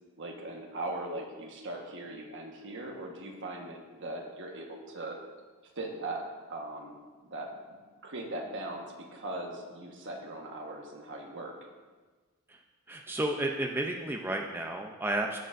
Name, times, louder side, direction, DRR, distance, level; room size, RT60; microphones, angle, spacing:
voice 1, 0.2-5.2 5.8-6.2 6.5-7.0 7.2-7.8 8.0-8.8 9.1-11.5, right 2 dB, 60° right, 1 dB, 1.3 m, -39 dB
voice 2, 12.9-15.4, right 1 dB, 10° right, 2 dB, 0.5 m, -32 dB
15.5 x 6.6 x 2.6 m, 1.4 s
head